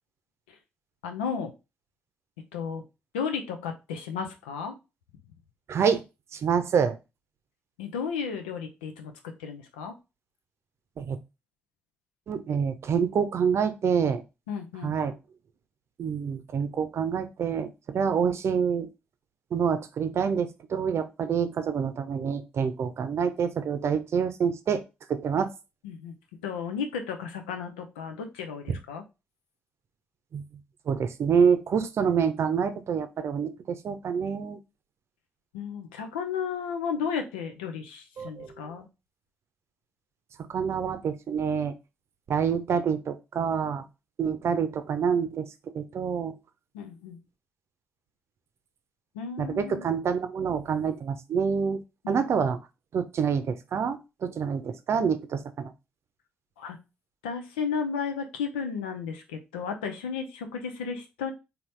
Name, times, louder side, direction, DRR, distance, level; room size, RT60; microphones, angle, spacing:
voice 1, 1.0-1.5 2.5-2.8 3.1-4.7 7.8-9.1 9.4-9.9 14.5-14.9 25.8-26.1 26.4-29.0 35.5-38.9 46.7-47.2 49.2-49.8 56.6-56.8 57.2-61.3, left 6 dB, 90° left, 5 dB, 0.6 m, -33 dB
voice 2, 5.7-6.0 6.3-7.0 11.0-11.2 12.3-14.2 14.8-15.1 16.0-18.9 19.5-24.8 25.1-25.5 28.7-28.8 30.3-30.4 30.9-34.6 38.2-38.5 40.5-41.7 42.3-43.8 44.2-45.5 45.7-46.4 49.4-51.8 52.1-52.6 52.9-55.7, right 6 dB, 60° right, 10 dB, 0.6 m, -27 dB
4.0 x 2.8 x 3.2 m, 0.26 s
hypercardioid pair, 40°, 5 cm